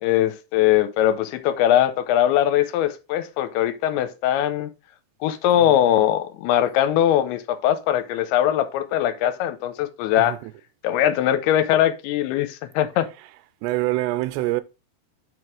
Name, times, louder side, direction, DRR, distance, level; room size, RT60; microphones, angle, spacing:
voice 1, 0.0-4.7 5.2-10.4 10.8-13.1, left 11 dB, 90° left, 2.6 m, -21 dB
voice 2, 5.6-5.9 10.2-10.5 13.6-14.6, right 18 dB, 85° right, 2.7 m, -26 dB
5.8 x 4.8 x 4.7 m
omnidirectional pair, 4.6 m